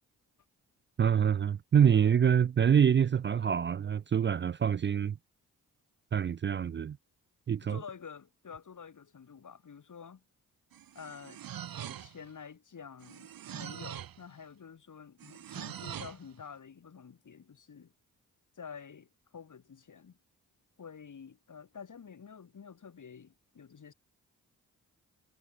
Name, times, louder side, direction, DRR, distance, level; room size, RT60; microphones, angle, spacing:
voice 1, 1.0-5.1 6.1-7.0 7.5-7.8, right 8 dB, 35° right, 0.4 m, -26 dB
voice 2, 7.6-10.2 10.9-11.4 11.7-17.9 18.5-20.2 20.8-23.9, left 6 dB, 60° left, 5.8 m, -49 dB
sound 1, 10.7-12.3 13.0-14.2 15.2-16.2, right 10 dB, 80° right, 2.9 m, -43 dB
supercardioid pair, 50°, 35 cm